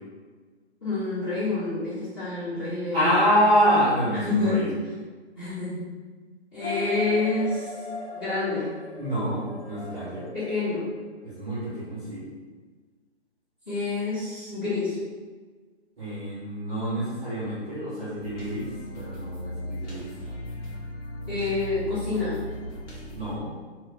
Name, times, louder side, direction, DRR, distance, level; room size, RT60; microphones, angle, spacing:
voice 1, 0.8-3.2 4.2-4.7 5.4-5.9 6.5-7.7 8.1-8.7 10.3-10.9 13.7-15.0 21.3-22.4, left 3 dB, 20° left, -11 dB, 0.8 m, -28 dB
voice 2, 2.9-4.7 9.0-10.2 11.2-12.3 16.0-18.6 19.0-20.0 23.1-23.5, equal, 5° right, -16 dB, 0.4 m, -26 dB
sound 1, 6.6-11.4, left 2 dB, 70° left, 0.7 m, -38 dB
sound 2, 18.2-23.4, equal, 90° left, 1.4 m, -37 dB
2.9 x 2.2 x 3.6 m, 1.4 s
figure-of-eight pair, 140°, 34 cm